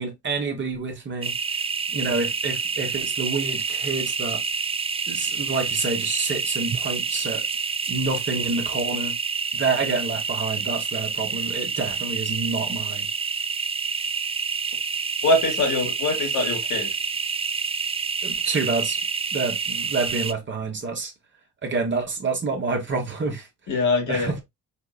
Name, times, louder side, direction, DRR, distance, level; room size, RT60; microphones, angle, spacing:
voice 1, 0.0-1.3 1.9-4.4 5.1-7.4 7.9-9.1 9.5-13.1 18.2-19.0 19.3-21.1 21.6-23.5 24.1-24.3, right 4 dB, 40° right, 1.3 m, -28 dB
sound 1, 1.2-20.3, right 5 dB, 20° right, 0.3 m, -28 dB
voice 2, 15.2-16.9 23.7-24.4, left 2 dB, 75° left, 1.9 m, -23 dB
4.1 x 3.8 x 2.3 m
cardioid pair, 90°, 30 cm